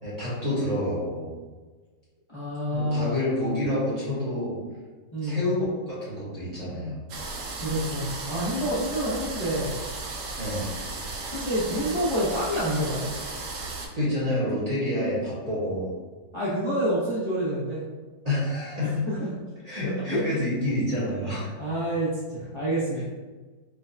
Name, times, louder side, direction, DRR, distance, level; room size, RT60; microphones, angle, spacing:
voice 1, 0.0-1.3 2.7-4.6 5.2-7.0 10.4-10.7 13.9-15.9 18.2-19.1 19.6-21.5, left 1 dB, 30° right, -9 dB, 0.8 m, -28 dB
voice 2, 2.3-3.3 5.1-5.5 7.6-9.8 11.3-13.1 16.3-17.8 18.8-19.3 20.1-20.2 21.0-21.2 21.6-23.0, equal, 45° left, -10 dB, 0.3 m, -28 dB
sound 1, 7.1-13.9, right 3 dB, 80° right, 0.7 m, -35 dB
4.4 x 2.3 x 2.6 m, 1.3 s
omnidirectional pair, 2.0 m